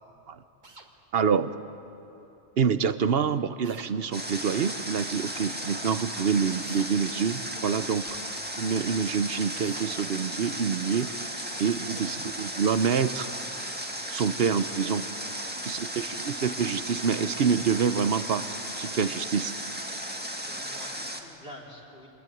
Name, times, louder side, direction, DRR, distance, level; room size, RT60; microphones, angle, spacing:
sound 1, 0.6-0.9 3.6-3.9 6.6-6.9 9.6-9.9, right 2 dB, 45° right, 1.9 m, -48 dB
voice 1, 1.1-1.5 2.6-8.1 8.6-11.1 11.6-13.3 14.1-15.1 15.7-18.5 18.8-19.5, right 6 dB, 65° right, 12 dB, 1.0 m, -26 dB
Water, 4.1-21.2, equal, 10° right, 1.8 m, -35 dB
voice 2, 15.6-16.1 20.1-22.1, left 1 dB, 55° left, -3 dB, 4.1 m, -49 dB
26.0 x 21.0 x 9.3 m, 2.8 s
omnidirectional pair, 1.1 m